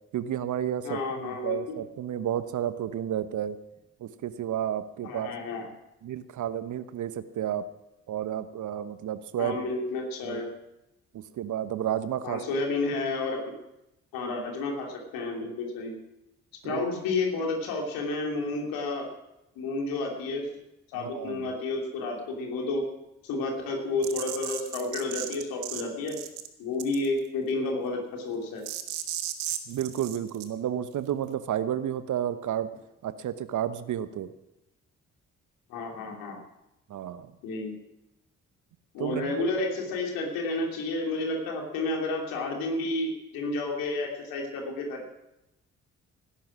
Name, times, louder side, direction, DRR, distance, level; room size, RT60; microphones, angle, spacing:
voice 1, 0.1-3.6 4.0-5.3 6.0-7.7 8.1-9.6 10.2-10.4 11.1-12.5 16.6-16.8 21.0-21.5 29.7-32.7 33.0-34.3 36.9-37.3 39.0-39.4, right 10 dB, 55° right, 13 dB, 1.1 m, -31 dB
voice 2, 0.8-1.8 5.0-5.6 9.4-10.5 12.2-13.4 14.1-16.0 16.6-19.1 19.6-20.5 20.9-22.8 23.2-26.2 26.6-28.6 35.7-36.4 37.4-37.8 38.9-45.1, left 3 dB, 70° left, 1 dB, 3.0 m, -31 dB
sound 1, 24.0-25.8 26.1-26.5 26.8-27.2 28.6-30.4, right 13 dB, 75° right, 1.3 m, -35 dB
17.5 x 10.5 x 6.2 m, 0.91 s
figure-of-eight pair, 40°, 36 cm